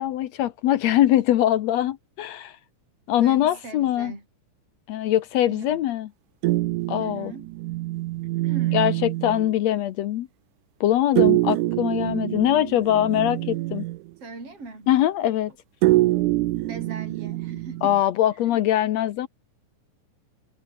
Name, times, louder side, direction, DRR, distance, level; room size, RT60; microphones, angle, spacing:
voice 1, 0.0-2.6 3.1-4.1 4.9-6.1 6.9-7.3 8.7-10.3 10.8-13.9 14.9-15.5 17.8-19.3, left 12 dB, 70° left, 1.8 m, -22 dB
voice 2, 3.2-4.2 5.5-5.8 7.0-7.5 8.2-8.9 14.2-14.9 16.6-17.9 18.3-18.6, right 3 dB, 45° right, 8.3 m, -40 dB
sound 1, 6.4-9.6 11.2-14.1 15.8-18.0, right 18 dB, 80° right, 2.1 m, -25 dB
omnidirectional pair, 3.7 m